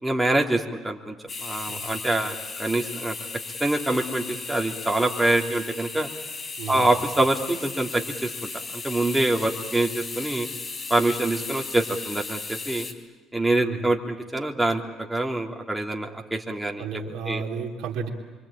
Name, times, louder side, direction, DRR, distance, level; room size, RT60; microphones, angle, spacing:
voice 1, 0.0-3.1 3.6-6.1 6.7-8.3 8.7-10.5 10.9-12.9 13.3-14.0 14.3-16.9 17.2-17.4, right 2 dB, 10° right, 1 dB, 3.2 m, -25 dB
sound 1, 1.3-12.9, left 4 dB, 40° left, 3.8 m, -36 dB
voice 2, 6.6-6.9 13.5-13.8 16.8-18.1, right 5 dB, 70° right, 2 dB, 3.0 m, -32 dB
26.0 x 24.5 x 8.9 m, 1.2 s
hypercardioid pair, 65°, 0 cm